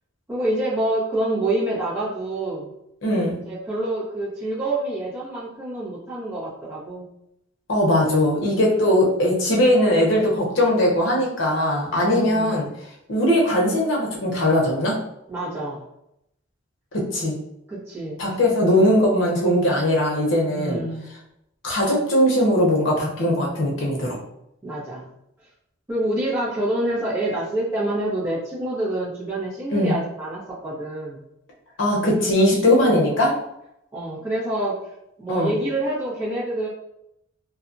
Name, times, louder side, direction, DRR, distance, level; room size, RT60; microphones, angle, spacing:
voice 1, 0.3-2.7 3.3-7.1 12.0-12.6 15.3-15.8 17.7-18.2 20.5-21.1 24.6-25.0 25.9-31.2 32.8-33.0 33.9-34.8 35.2-36.7, right 1 dB, 10° right, -10 dB, 1.1 m, -27 dB
voice 2, 3.0-3.4 7.7-12.6 13.1-15.0 16.9-17.3 18.2-20.8 21.6-24.2 29.7-30.0 31.8-33.4 35.3-35.5, left 1 dB, 80° left, -2 dB, 0.8 m, -20 dB
2.7 x 2.3 x 2.6 m, 0.81 s
head